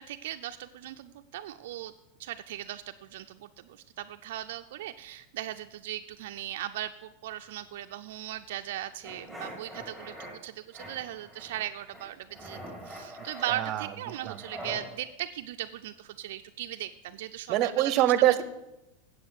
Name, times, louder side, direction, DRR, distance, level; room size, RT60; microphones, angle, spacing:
voice 1, 0.0-1.9 2.2-12.6 12.8-18.1, right 13 dB, 70° right, 7 dB, 0.4 m, -38 dB
sound 1, 9.0-10.3 10.7-11.6 11.9-14.8, equal, 10° left, 2.9 m, -43 dB
voice 2, 13.5-13.9 14.2-14.4 17.5-18.4, right 13 dB, 35° right, 13 dB, 0.7 m, -24 dB
8.5 x 7.8 x 6.4 m, 0.92 s
supercardioid pair, 150°, 0 cm